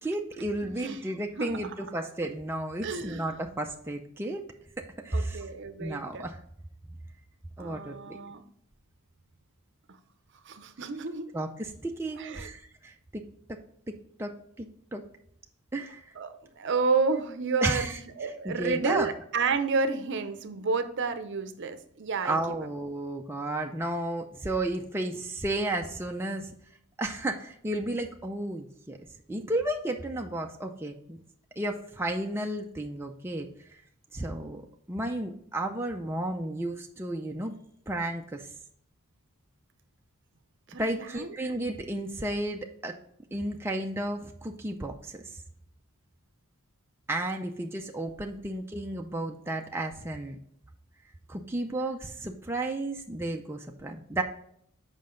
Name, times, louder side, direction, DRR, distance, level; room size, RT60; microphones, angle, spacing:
voice 1, 0.0-4.4 5.0-5.5 5.8-6.4 7.6-8.2 11.3-13.2 13.5-13.6 14.2-14.3 14.6-15.0 15.7-16.0 17.6-18.0 18.4-19.1 22.2-26.5 27.0-29.0 29.3-31.2 31.6-33.5 34.1-34.6 34.9-37.5 37.9-38.5 40.8-42.9 43.3-45.2 47.1-50.4 51.3-54.2, right 1 dB, 10° right, 2 dB, 0.4 m, -33 dB
voice 2, 0.6-1.0 1.4-2.1 2.8-3.3 5.1-6.3 7.6-8.4 10.4-11.3 12.2-12.5 16.2-22.4 40.7-41.3, right 4 dB, 55° right, 10 dB, 0.6 m, -31 dB
7.5 x 5.2 x 3.8 m, 0.68 s
head